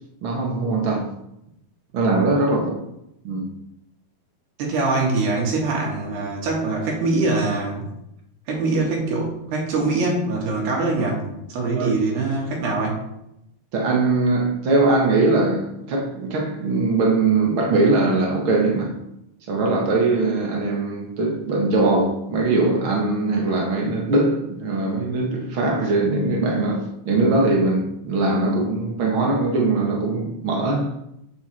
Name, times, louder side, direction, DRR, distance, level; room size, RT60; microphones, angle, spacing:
voice 1, 0.2-1.1 1.9-2.7 3.2-3.5 11.8-11.9 13.7-18.9 19.5-30.9, right 2 dB, 50° right, 1.7 m, -21 dB
voice 2, 4.6-7.9 8.5-11.2 11.5-13.0, right 3 dB, 85° right, 4.3 m, -23 dB
8.3 x 8.0 x 4.5 m
omnidirectional pair, 4.5 m